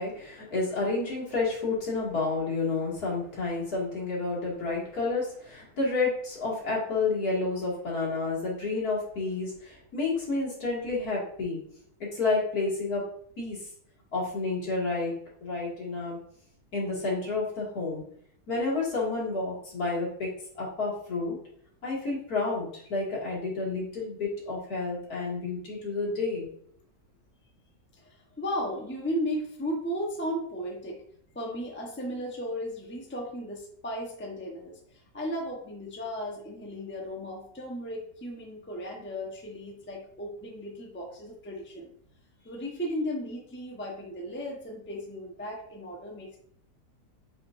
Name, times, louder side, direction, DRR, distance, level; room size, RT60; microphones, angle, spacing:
voice 1, 0.0-11.6 12.0-13.0 13.4-13.6 14.1-15.1 15.4-16.2 16.7-18.0 18.5-20.3 20.6-21.4 21.8-26.5, left 3 dB, 60° left, -5 dB, 2.8 m, -30 dB
voice 2, 28.0-31.0 31.3-34.8 35.1-41.9 42.4-46.4, equal, 10° left, -1 dB, 0.9 m, -35 dB
7.6 x 5.1 x 2.6 m, 0.64 s
omnidirectional pair, 1.8 m